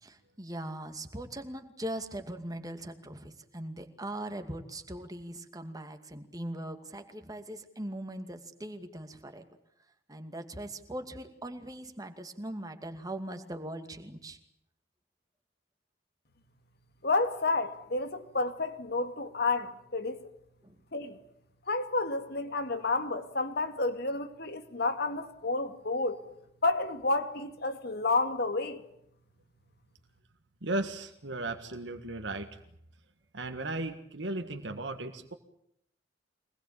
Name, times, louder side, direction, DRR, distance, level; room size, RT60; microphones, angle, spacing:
voice 1, 0.0-9.4 10.1-14.4 20.6-20.8, right 1 dB, 20° right, 2.3 m, -40 dB
voice 2, 17.0-20.3 20.9-21.2 21.7-26.2 26.6-28.8, left 3 dB, 60° left, 2.4 m, -30 dB
voice 3, 30.6-32.6 33.3-35.3, right 2 dB, 70° right, 1.8 m, -35 dB
25.0 x 20.0 x 8.9 m
head